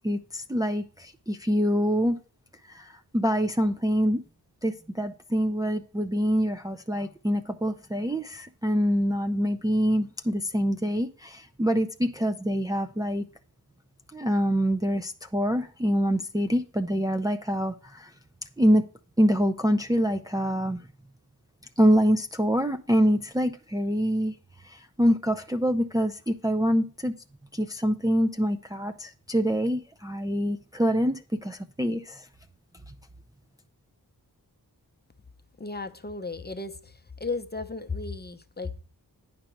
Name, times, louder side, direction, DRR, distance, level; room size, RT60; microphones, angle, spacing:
voice 1, 0.0-2.2 2.7-4.2 4.6-13.2 14.1-18.1 18.6-18.8 19.2-20.8 21.8-24.3 24.6-27.1 27.5-32.3, equal, 10° right, 6 dB, 0.5 m, -25 dB
voice 2, 35.6-38.7, left 3 dB, 25° left, 9 dB, 0.8 m, -35 dB
10.5 x 5.1 x 4.4 m, 0.38 s
cardioid pair, 50°, 40 cm